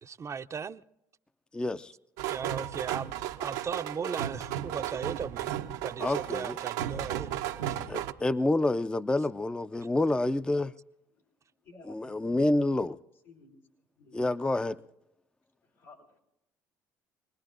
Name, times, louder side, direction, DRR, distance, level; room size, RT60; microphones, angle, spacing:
voice 1, 0.0-0.8 2.3-3.1 3.4-5.5 5.8-7.3, right 6 dB, 35° right, 0.5 m, -37 dB
voice 2, 1.5-1.9 6.0-6.6 7.9-10.7 11.9-13.0 14.1-14.8, left 2 dB, 10° left, 0.5 m, -28 dB
sound 1, 2.2-8.1, right 11 dB, 90° right, 0.8 m, -34 dB
voice 3, 11.6-12.6 13.2-13.6 14.0-14.2 15.6-16.2, left 3 dB, 90° left, 4.6 m, -54 dB
27.0 x 20.0 x 2.5 m
supercardioid pair, 70°, 8 cm